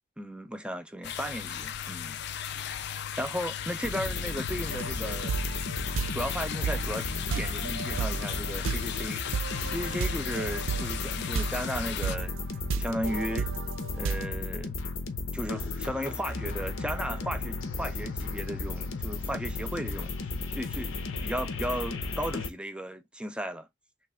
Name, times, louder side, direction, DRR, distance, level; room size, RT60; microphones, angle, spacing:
voice 1, 0.2-2.2 2.6-5.3 6.1-9.2 9.6-12.4 12.8-13.5 13.9-14.8 15.3-20.1 20.5-23.7, equal, 5° right, 0.5 m, -35 dB
sound 1, 1.0-12.2, left 9 dB, 60° left, 0.4 m, -37 dB
sound 2, 3.8-22.5, left 3 dB, 80° left, 0.8 m, -35 dB
sound 3, 4.7-14.3, right 6 dB, 80° right, 0.4 m, -34 dB
3.3 x 3.1 x 4.8 m
head